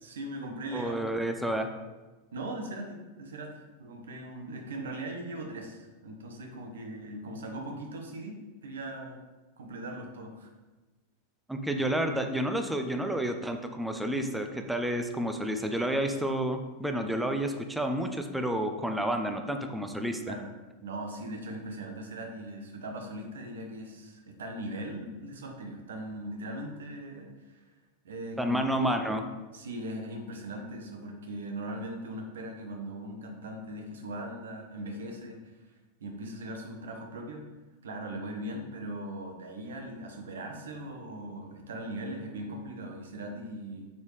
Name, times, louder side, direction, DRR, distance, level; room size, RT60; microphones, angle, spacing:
voice 1, 0.0-1.1 2.3-8.4 8.6-9.2 9.6-10.5 20.3-20.5 20.8-27.6 28.0-28.6 29.5-35.4 36.0-37.5 37.8-43.9, right 1 dB, 65° right, 3 dB, 1.5 m, -39 dB
voice 2, 0.7-1.7 11.5-20.3 28.4-29.2, right 1 dB, 5° right, 5 dB, 0.8 m, -30 dB
9.3 x 7.3 x 3.3 m, 1.2 s
figure-of-eight pair, 90°, 0 cm